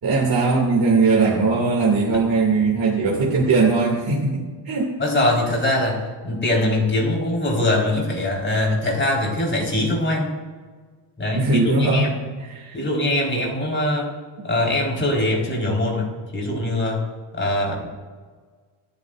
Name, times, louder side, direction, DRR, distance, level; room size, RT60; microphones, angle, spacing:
voice 1, 0.0-4.9 11.3-12.1 12.5-12.8, right 3 dB, 45° right, -4 dB, 2.6 m, -19 dB
voice 2, 5.0-10.4 11.2-12.3 12.7-14.1 14.4-17.0 17.3-17.9, left 1 dB, 25° left, -2 dB, 4.5 m, -22 dB
27.0 x 9.9 x 2.6 m, 1.5 s
cardioid pair, 115°, 49 cm